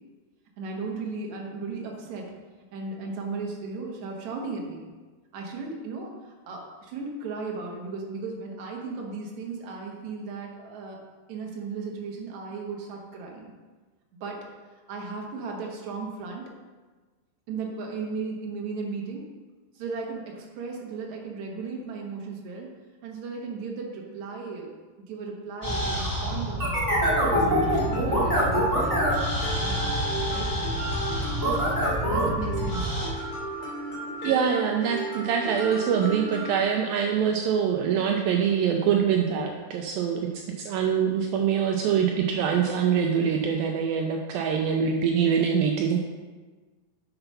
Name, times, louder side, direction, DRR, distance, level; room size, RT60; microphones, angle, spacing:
voice 1, 0.6-2.3 2.7-4.9 5.3-11.0 11.3-13.5 14.2-14.5 14.9-16.4 17.5-19.3 19.8-22.7 23.0-24.7 25.1-29.1 29.6-30.9 32.1-32.9, right 4 dB, 60° right, 0 dB, 2.2 m, -36 dB
sound 1, 25.6-33.1, equal, 5° right, 1.7 m, -25 dB
Mallet percussion, 27.0-36.6, right 2 dB, 35° left, 3.7 m, -35 dB
voice 2, 34.2-40.2 40.6-46.0, right 7 dB, 85° right, 2 dB, 2.1 m, -24 dB
7.9 x 6.9 x 5.7 m, 1.3 s
omnidirectional pair, 4.6 m